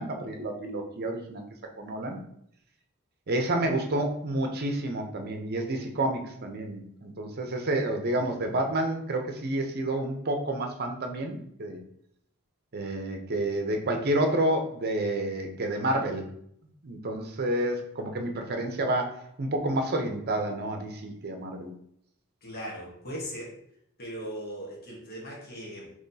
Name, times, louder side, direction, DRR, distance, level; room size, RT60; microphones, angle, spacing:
voice 1, 0.0-1.4 1.8-2.2 3.3-11.8 12.7-16.3 16.8-21.7, right 1 dB, 45° right, 4 dB, 0.7 m, -29 dB
voice 2, 22.4-23.5 24.0-25.9, equal, 45° left, -3 dB, 1.2 m, -38 dB
5.6 x 3.0 x 2.7 m, 0.71 s
head